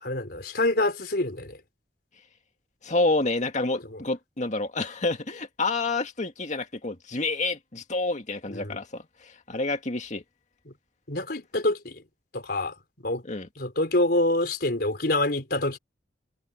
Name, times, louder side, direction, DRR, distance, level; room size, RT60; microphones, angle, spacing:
voice 1, 0.0-1.6 3.7-4.0 8.5-8.8 10.7-10.8 11.1-12.0 12.3-12.7 13.0-13.2 13.6-15.8, left 2 dB, 60° left, 4.4 m, -26 dB
voice 2, 2.8-10.2 13.2-13.5, left 2 dB, 45° left, 2.1 m, -28 dB
head